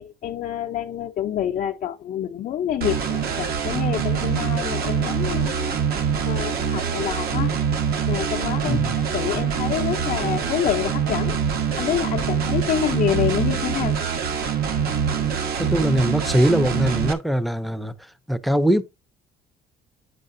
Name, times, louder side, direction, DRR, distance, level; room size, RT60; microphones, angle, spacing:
voice 1, 0.0-5.8 6.3-7.5 8.1-11.4 11.8-14.0, left 10 dB, 50° left, 0.6 m, -27 dB
sound 1, 2.8-17.1, right 7 dB, 65° right, 1.2 m, -24 dB
voice 2, 8.6-9.0 15.6-17.9 18.3-18.8, right 1 dB, ahead, 0.6 m, -21 dB
8.3 x 6.6 x 2.6 m
cardioid pair, 110°, 17 cm